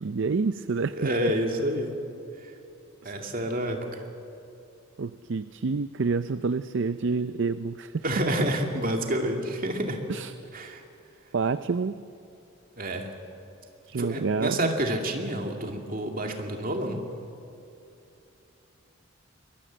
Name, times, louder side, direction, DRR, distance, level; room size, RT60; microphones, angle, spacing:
voice 1, 0.0-1.0 3.0-3.1 5.0-8.2 10.1-10.3 11.3-12.0 13.9-14.8, right 4 dB, 60° right, 13 dB, 0.5 m, -28 dB
voice 2, 0.9-1.9 2.4-2.5 3.0-4.0 8.0-10.0 10.5-10.8 12.8-13.1 14.0-17.1, right 1 dB, 40° right, 3 dB, 2.4 m, -29 dB
23.5 x 20.5 x 7.5 m, 2.8 s
head